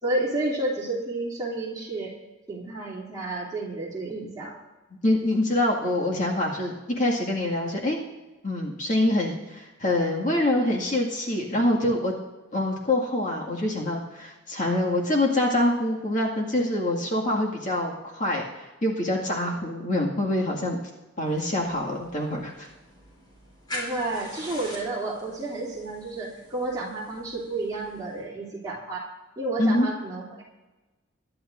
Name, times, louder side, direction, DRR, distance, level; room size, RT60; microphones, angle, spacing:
voice 1, 0.0-2.1 2.5-4.5 23.7-29.0 29.4-30.4, right 2 dB, 20° right, -5 dB, 2.9 m, -31 dB
voice 2, 5.0-8.0 8.4-12.1 12.5-20.8 21.2-22.7 29.6-29.9, left 1 dB, 40° left, -2 dB, 2.0 m, -25 dB
sound 1, 21.2-28.2, left 1 dB, 20° left, 4.2 m, -43 dB
23.0 x 11.0 x 2.6 m, 1.1 s
head